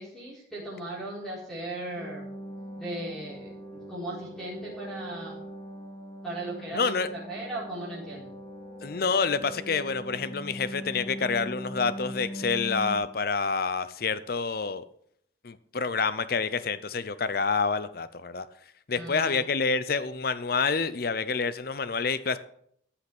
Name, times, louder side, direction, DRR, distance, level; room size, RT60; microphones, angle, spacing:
voice 1, 0.0-2.3 2.8-5.4 6.2-8.3 18.9-19.4, right 1 dB, ahead, -7 dB, 4.1 m, -37 dB
sound 1, 1.9-13.0, equal, 25° left, 2.8 m, -41 dB
voice 2, 6.7-7.1 8.8-14.8 15.4-18.5 18.9-22.4, left 5 dB, 50° left, 14 dB, 0.6 m, -28 dB
13.5 x 5.8 x 6.1 m, 0.68 s
head